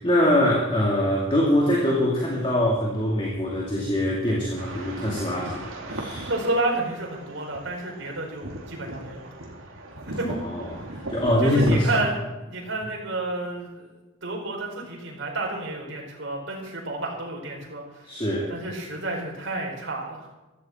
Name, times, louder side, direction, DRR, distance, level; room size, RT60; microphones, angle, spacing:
voice 1, 0.0-6.3 10.4-12.0 18.0-18.5, left 1 dB, 25° left, -3 dB, 2.5 m, -23 dB
sound 1, 4.6-11.8, right 1 dB, 85° right, 2.4 m, -37 dB
voice 2, 6.3-9.3 10.0-10.3 11.4-12.1 12.5-13.9 14.2-18.2 18.5-20.3, right 2 dB, 65° right, -1 dB, 4.6 m, -30 dB
15.5 x 14.5 x 4.4 m, 1.1 s
head